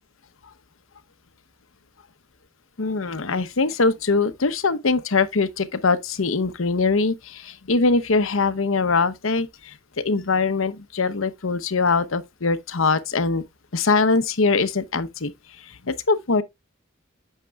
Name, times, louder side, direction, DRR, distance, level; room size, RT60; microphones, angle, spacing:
voice 1, 2.8-9.7 10.0-13.4 13.7-15.3 15.9-16.4, left 4 dB, 80° left, 0.9 m, -22 dB
9.0 x 6.5 x 2.4 m
head